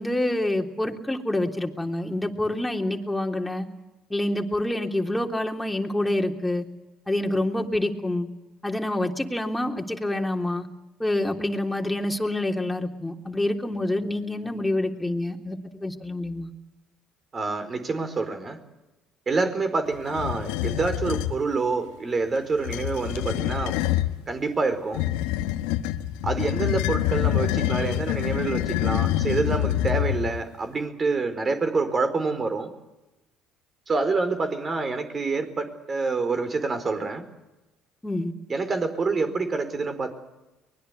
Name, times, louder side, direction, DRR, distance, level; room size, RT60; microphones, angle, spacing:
voice 1, 0.0-3.7 4.1-6.6 7.1-8.3 8.6-10.7 11.0-16.5 38.0-38.3, left 1 dB, 10° left, 3 dB, 3.4 m, -27 dB
voice 2, 17.3-18.6 19.3-23.8 24.3-25.0 26.2-32.7 33.9-37.2 38.5-40.1, right 3 dB, 35° right, 9 dB, 4.4 m, -27 dB
sound 1, 20.1-21.4 22.5-24.1 24.9-30.4, left 13 dB, 80° left, 1.3 m, -26 dB
24.0 x 21.0 x 8.2 m, 1.0 s
hypercardioid pair, 65°, 0 cm